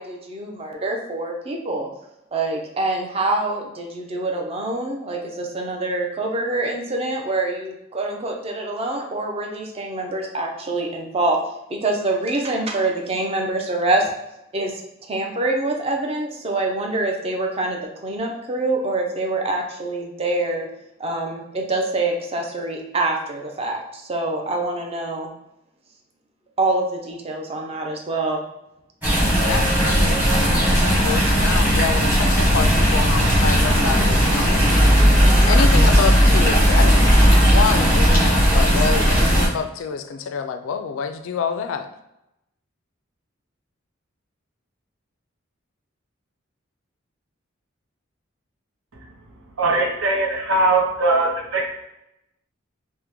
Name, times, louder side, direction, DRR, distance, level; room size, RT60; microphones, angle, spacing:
voice 1, 0.0-1.9 2.3-11.4 11.7-14.0 14.5-14.7 15.1-20.7 21.0-25.3 26.6-28.4, right 2 dB, 30° right, 1 dB, 0.5 m, -25 dB
sound 1, 29.0-39.5, equal, 10° right, 0.9 m, -16 dB
voice 2, 29.4-41.9, left 6 dB, 70° left, 7 dB, 0.3 m, -28 dB
voice 3, 49.6-51.7, right 2 dB, 80° right, 1 dB, 0.7 m, -20 dB
3.4 x 2.1 x 3.0 m, 0.86 s
head